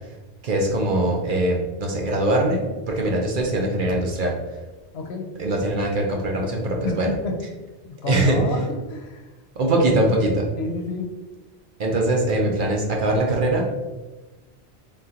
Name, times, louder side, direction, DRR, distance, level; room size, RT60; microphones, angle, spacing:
voice 1, 0.4-4.3 5.4-7.1 8.1-8.4 9.6-10.5 11.8-13.7, right 1 dB, 55° right, 0 dB, 0.7 m, -22 dB
voice 2, 4.9-5.3 6.8-7.3 7.9-8.6 8.9-9.2 10.6-11.1, left 3 dB, 70° left, 2 dB, 0.9 m, -29 dB
3.7 x 3.7 x 2.8 m, 1.2 s
omnidirectional pair, 1.1 m